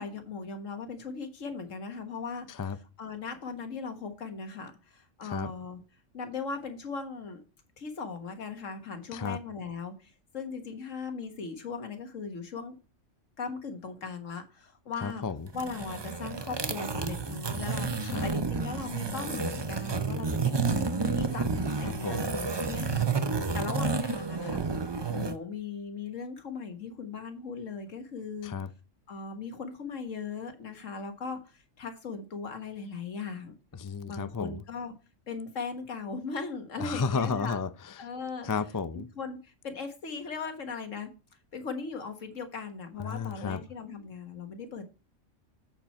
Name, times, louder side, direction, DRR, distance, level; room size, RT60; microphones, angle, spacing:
voice 1, 0.0-2.5 3.0-5.8 6.1-7.4 7.8-12.8 13.4-15.2 15.5-21.5 21.8-23.1 23.5-24.7 25.1-28.5 29.1-33.6 34.0-34.9 35.3-37.6 38.0-38.5 38.9-41.1 41.5-44.9, left 4 dB, 85° left, 1.8 m, -38 dB
voice 2, 5.2-5.5 9.1-9.4 15.0-15.5 18.0-18.3 21.2-22.3 28.4-28.7 33.7-34.6 36.8-38.1 38.4-39.1 43.0-43.6, left 5 dB, 35° left, 0.3 m, -33 dB
sound 1, 15.5-25.4, right 4 dB, 30° right, 0.6 m, -30 dB
8.0 x 7.3 x 4.3 m
omnidirectional pair, 1.3 m